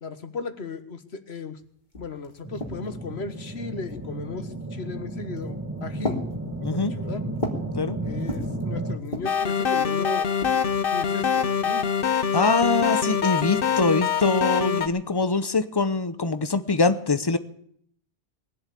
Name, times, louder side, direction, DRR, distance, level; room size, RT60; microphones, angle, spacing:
voice 1, 0.0-1.6 2.0-6.2 6.7-7.2 8.0-10.3 10.9-11.9, left 4 dB, 85° left, 10 dB, 1.6 m, -36 dB
sound 1, 1.6-1.7 1.9-3.1 3.9-4.4 5.2-5.6 6.0-7.7 8.1-8.6 9.0-9.5 10.2-11.2, left 1 dB, 45° left, 2.7 m, -35 dB
sound 2, 2.4-9.0, right 2 dB, 15° right, 2.0 m, -33 dB
voice 2, 6.6-6.9 7.7-8.0 12.3-17.4, left 3 dB, 25° left, 12 dB, 0.8 m, -23 dB
sound 3, 9.3-14.9, left 7 dB, 65° left, 1.1 m, -24 dB
20.5 x 8.0 x 8.4 m, 0.66 s
omnidirectional pair, 1.0 m